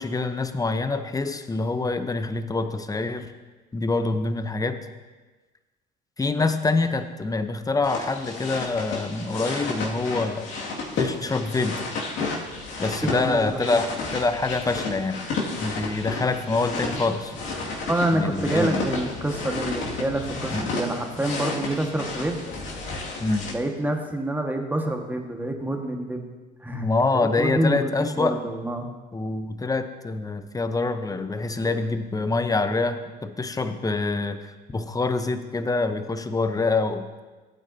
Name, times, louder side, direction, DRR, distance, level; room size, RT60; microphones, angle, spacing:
voice 1, 0.0-3.3 3.7-4.8 6.2-10.5 11.0-11.8 12.8-15.2 15.6-17.3 18.1-18.9 20.5-20.7 23.2-23.5 26.7-28.4 29.1-37.1, left 3 dB, 15° left, 9 dB, 0.8 m, -26 dB
sound 1, 7.8-23.5, left 3 dB, 65° left, 2.2 m, -32 dB
voice 2, 13.0-13.8 17.9-22.4 23.5-26.3 26.6-26.9 27.1-28.9, right 1 dB, 10° right, 3 dB, 1.5 m, -27 dB
sound 2, 15.8-22.8, right 2 dB, 65° right, 3.4 m, -45 dB
15.5 x 8.9 x 2.8 m, 1.2 s
supercardioid pair, 70°, 21 cm